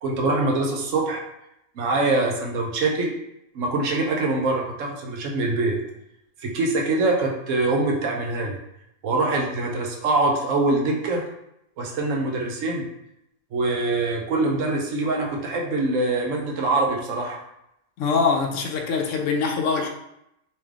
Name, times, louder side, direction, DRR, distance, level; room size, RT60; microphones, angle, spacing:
voice 1, 0.0-1.2 1.8-3.1 3.5-5.8 6.4-8.6 9.0-11.2 11.8-12.9 13.5-17.4, right 2 dB, 65° right, 0 dB, 1.0 m, -24 dB
voice 2, 18.0-19.9, left 5 dB, 65° left, 3 dB, 0.9 m, -23 dB
3.2 x 3.1 x 3.5 m, 0.82 s
omnidirectional pair, 1.5 m